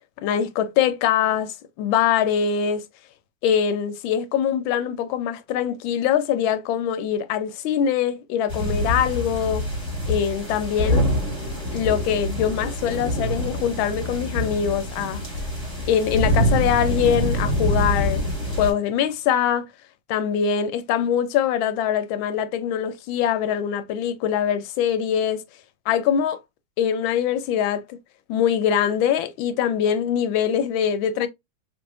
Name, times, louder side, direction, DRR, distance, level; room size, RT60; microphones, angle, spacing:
voice 1, 0.2-2.8 3.4-9.6 10.1-11.1 11.7-15.2 15.9-18.3 18.6-19.7 20.1-25.4 25.9-26.4 26.8-28.0 28.3-31.3, left 8 dB, 80° left, 1.3 m, -23 dB
Thunder Storm Nonstop Thunder, 8.5-18.7, equal, 15° right, 1.1 m, -25 dB
4.1 x 2.7 x 2.5 m
omnidirectional pair, 2.2 m